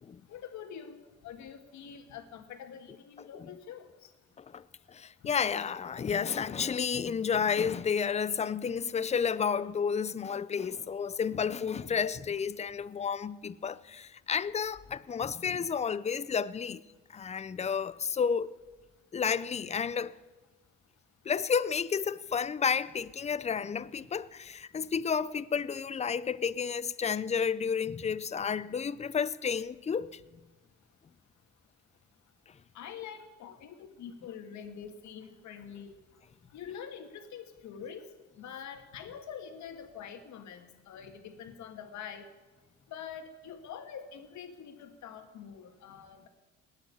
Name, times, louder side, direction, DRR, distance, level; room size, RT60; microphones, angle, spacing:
voice 1, 0.3-1.0 1.2-4.1 32.7-36.0 36.5-38.0 38.4-42.2 42.9-46.3, left 8 dB, 70° left, 1.8 m, -45 dB
voice 2, 4.4-16.8 17.1-18.5 19.1-20.2 21.2-30.2, left 6 dB, 20° left, 0.5 m, -31 dB
19.0 x 6.6 x 8.3 m
supercardioid pair, 85°, 30 cm